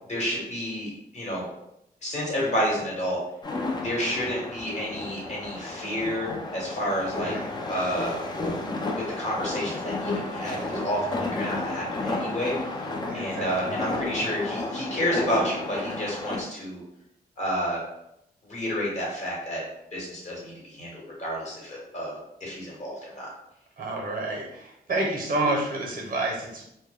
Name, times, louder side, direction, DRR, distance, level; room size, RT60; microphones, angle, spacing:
voice 1, 0.1-1.5 2.0-3.2 3.8-7.3 7.7-8.2 8.9-16.8 17.4-17.8 18.4-19.6 19.9-22.1 22.4-23.3, equal, 45° left, -4 dB, 1.0 m, -30 dB
sound 1, 3.4-16.4, left 2 dB, 25° left, 0.4 m, -32 dB
voice 2, 7.1-7.5 13.0-13.8 23.8-26.6, right 2 dB, 55° right, -1 dB, 0.7 m, -29 dB
2.2 x 2.0 x 3.2 m, 0.81 s
wide cardioid pair, 95°, 17 cm